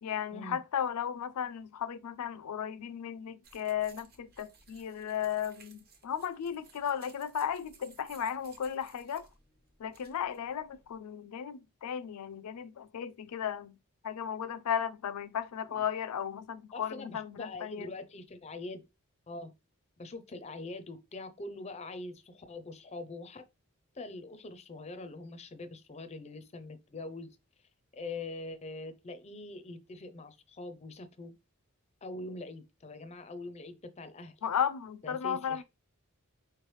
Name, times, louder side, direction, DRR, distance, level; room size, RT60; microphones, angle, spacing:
voice 1, 0.0-9.3 9.8-13.8 14.0-17.9 34.4-35.6, left 8 dB, 90° left, 0.4 m, -35 dB
sound 1, 3.4-11.0, right 4 dB, 45° right, 0.9 m, -60 dB
voice 2, 16.7-18.8 19.3-19.5 20.0-23.4 23.9-27.3 27.9-31.3 32.0-34.4 35.0-35.6, left 2 dB, 30° left, 0.4 m, -43 dB
4.5 x 3.1 x 3.1 m
head